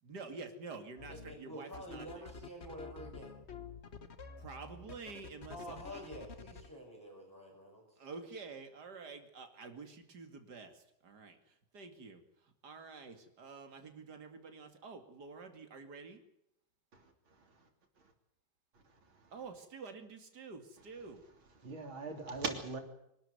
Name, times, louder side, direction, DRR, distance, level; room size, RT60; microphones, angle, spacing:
voice 1, 0.0-2.2 4.4-6.0 8.0-16.2 19.3-21.2, right 4 dB, 55° right, 6 dB, 3.0 m, -49 dB
sound 1, 1.0-1.3 1.7-6.7, left 5 dB, 35° left, 1.4 m, -49 dB
voice 2, 1.1-3.4 5.5-7.8, equal, 10° left, -3 dB, 5.9 m, -48 dB
voice 3, 16.9-17.7 18.0-18.1 18.7-19.3 21.6-22.8, right 3 dB, 80° right, 5 dB, 3.9 m, -42 dB
24.5 x 12.5 x 9.7 m, 0.79 s
omnidirectional pair, 2.2 m